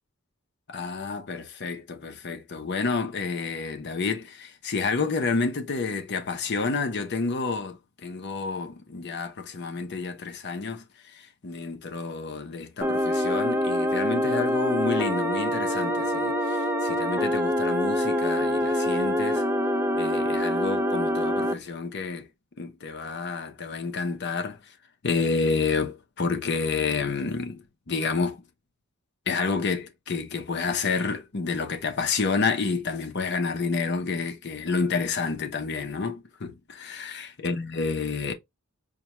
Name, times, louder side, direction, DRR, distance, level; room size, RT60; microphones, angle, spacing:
voice 1, 0.7-19.5 19.9-22.3 22.6-24.7 25.0-28.4 29.3-38.3, left 4 dB, 55° left, 0.7 m, -29 dB
sound 1, 12.8-21.5, left 1 dB, 10° right, 0.4 m, -25 dB
4.9 x 2.2 x 2.9 m
head